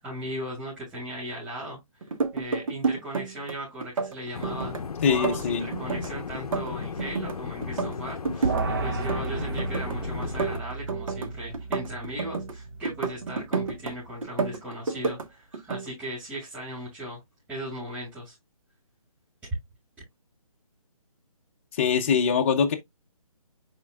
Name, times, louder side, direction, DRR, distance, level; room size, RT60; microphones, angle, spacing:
voice 1, 0.0-1.8 2.3-4.7 5.1-17.2 17.5-18.3, equal, 10° right, 5.9 m, -37 dB
sound 1, 2.0-3.5 3.8-4.8 5.1-7.4 7.6-8.7 8.9-10.0 10.2-12.5 12.8-13.9 14.2-15.3 15.5-15.9, right 4 dB, 65° right, 1.6 m, -30 dB
sound 2, 4.3-10.6, left 6 dB, 90° left, 0.7 m, -36 dB
voice 2, 5.0-5.6 21.8-22.8, left 6 dB, 20° left, 0.7 m, -23 dB
sound 3, 8.4-14.0, right 3 dB, 35° right, 0.9 m, -34 dB
10.5 x 4.4 x 2.3 m
hypercardioid pair, 165°, 19 cm